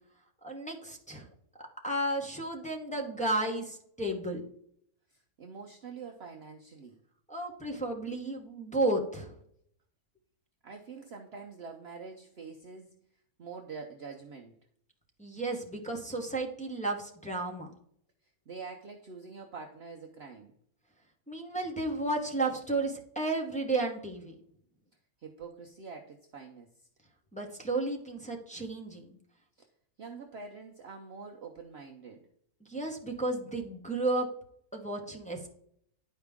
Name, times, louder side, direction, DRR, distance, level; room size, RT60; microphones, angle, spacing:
voice 1, 0.4-1.3 1.8-4.4 7.3-9.3 15.2-17.7 21.3-24.3 27.3-29.1 32.7-34.3 34.7-35.5, right 2 dB, 5° left, -1 dB, 0.7 m, -33 dB
voice 2, 5.1-7.0 10.6-12.9 13.4-14.6 18.5-20.6 25.2-26.9 29.6-29.7 30.0-32.3, right 5 dB, 55° right, 2 dB, 0.8 m, -45 dB
10.5 x 4.8 x 3.5 m, 0.69 s
omnidirectional pair, 1.6 m